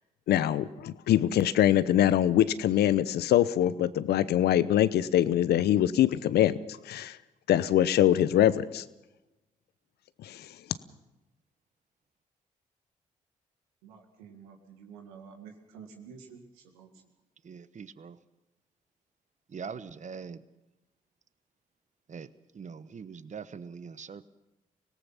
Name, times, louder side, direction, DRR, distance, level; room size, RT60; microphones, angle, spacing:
voice 1, 0.3-6.6 6.9-7.2 7.5-8.8 10.2-10.5, left 11 dB, 70° left, 0.8 m, -23 dB
voice 2, 13.8-17.0, right 6 dB, 85° right, 2.1 m, -50 dB
voice 3, 17.4-18.2 19.5-20.4 22.1-22.3 22.5-24.2, right 6 dB, 45° right, 1.1 m, -42 dB
25.0 x 18.0 x 5.8 m
hypercardioid pair, 40°, 17 cm